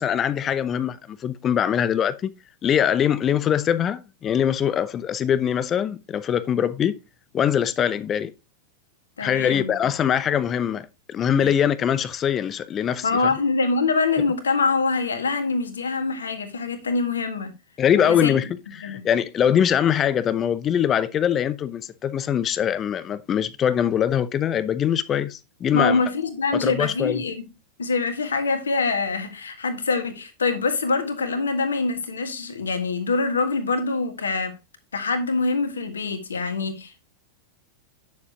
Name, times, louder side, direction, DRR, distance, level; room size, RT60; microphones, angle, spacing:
voice 1, 0.0-2.3 2.6-7.0 7.3-8.3 9.2-13.1 17.8-18.5 18.8-26.0 26.6-27.2, left 9 dB, 25° left, 0.6 m, -22 dB
voice 2, 9.2-9.8 11.4-11.5 13.0-17.5 18.0-18.4 18.8-19.1 25.7-27.5 27.8-34.6 34.9-37.0, left 4 dB, 70° left, 1.7 m, -24 dB
9.5 x 7.0 x 2.9 m
figure-of-eight pair, 90°, 0 cm